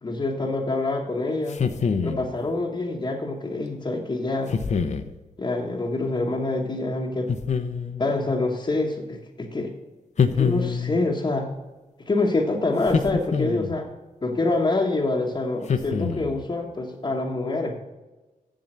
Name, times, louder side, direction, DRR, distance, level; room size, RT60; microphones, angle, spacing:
voice 1, 0.0-1.6 2.0-4.5 5.4-7.3 8.0-9.7 10.3-11.5 12.1-13.9 14.2-17.8, left 2 dB, 35° left, -2 dB, 1.1 m, -26 dB
sound 1, 1.5-2.3 4.5-5.1 7.3-8.1 10.2-11.0 12.9-13.8 15.7-16.4, left 6 dB, 55° left, 0.7 m, -25 dB
7.4 x 7.1 x 6.6 m, 1.2 s
cardioid pair, 80°, 14 cm